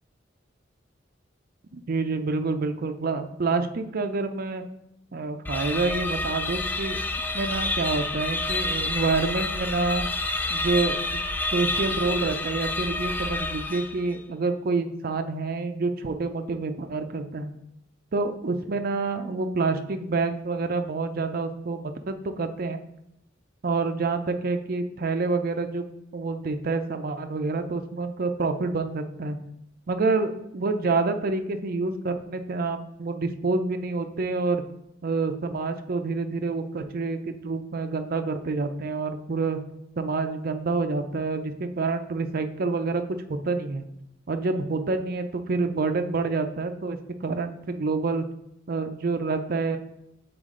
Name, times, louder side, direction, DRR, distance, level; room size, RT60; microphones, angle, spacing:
voice 1, 1.7-4.6 5.1-7.0 7.3-10.1 10.5-11.2 11.5-17.5 18.1-22.8 23.6-29.4 29.9-34.6 35.0-39.6 40.0-43.0 43.4-43.8 44.3-48.2 48.7-49.8, right 3 dB, 50° right, 7 dB, 0.5 m, -27 dB
sound 1, 5.4-14.1, left 2 dB, 10° left, 0.3 m, -29 dB
6.9 x 4.1 x 3.7 m, 0.82 s
head